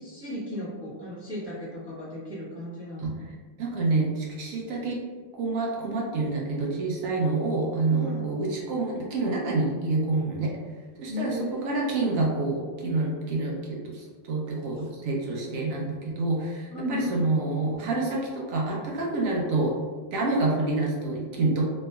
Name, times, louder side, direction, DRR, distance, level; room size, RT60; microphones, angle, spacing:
voice 1, 0.0-3.2 7.9-8.2 11.1-11.9 16.7-17.2, left 1 dB, 15° left, -9 dB, 1.1 m, -35 dB
voice 2, 3.6-5.0 5.4-10.5 11.0-19.7 20.1-21.6, right 3 dB, 65° right, -3 dB, 0.9 m, -27 dB
3.1 x 3.0 x 2.2 m, 1.5 s
omnidirectional pair, 1.9 m